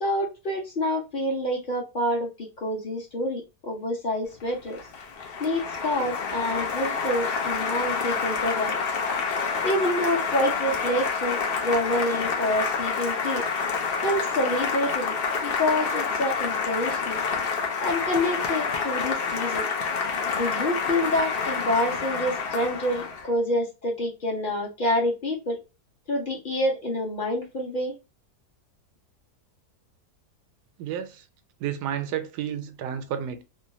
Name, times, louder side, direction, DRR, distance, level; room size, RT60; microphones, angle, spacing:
voice 1, 0.0-4.8 5.4-8.8 9.6-13.4 14.0-15.1 15.4-17.2 17.8-19.7 20.3-25.6 26.1-28.0, left 1 dB, 40° left, 0.8 m, -27 dB
Applause, 4.4-23.3, left 5 dB, 70° left, 0.5 m, -28 dB
voice 2, 30.8-31.3 31.6-33.4, right 9 dB, 80° right, 1.1 m, -31 dB
3.0 x 2.1 x 2.7 m
omnidirectional pair, 1.8 m